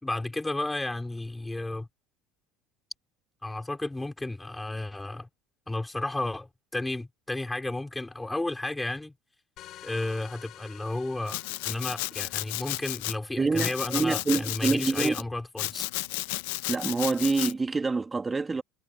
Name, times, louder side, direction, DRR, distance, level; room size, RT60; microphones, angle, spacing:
voice 1, 0.0-1.9 3.4-5.3 5.7-9.1 9.8-15.9, left 2 dB, 10° left, 3.6 m, -33 dB
sound 1, 9.6-12.7, left 13 dB, 55° left, 5.9 m, -49 dB
Domestic sounds home sounds, 11.3-13.2 13.6-15.2 15.6-17.5, left 22 dB, 80° left, 0.8 m, -33 dB
voice 2, 13.4-15.2 16.7-18.6, right 3 dB, 20° right, 2.3 m, -26 dB
supercardioid pair, 100°, 0 cm